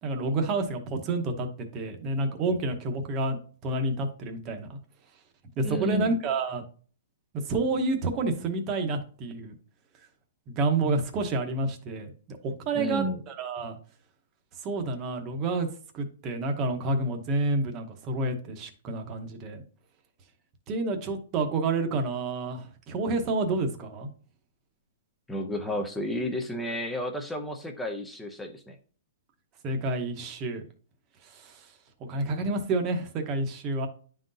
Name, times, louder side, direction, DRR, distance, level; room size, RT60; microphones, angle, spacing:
voice 1, 0.0-3.4 3.6-4.8 5.6-6.6 7.4-9.5 10.5-13.8 14.6-15.7 15.9-19.6 20.7-24.1 29.6-30.6 31.2-31.7 32.1-33.9, right 2 dB, 20° right, 5 dB, 0.8 m, -29 dB
voice 2, 5.6-6.1 12.7-13.2 25.3-28.8, equal, 5° left, 4 dB, 0.5 m, -32 dB
10.5 x 3.8 x 2.6 m, 0.41 s
hypercardioid pair, 175°, 0 cm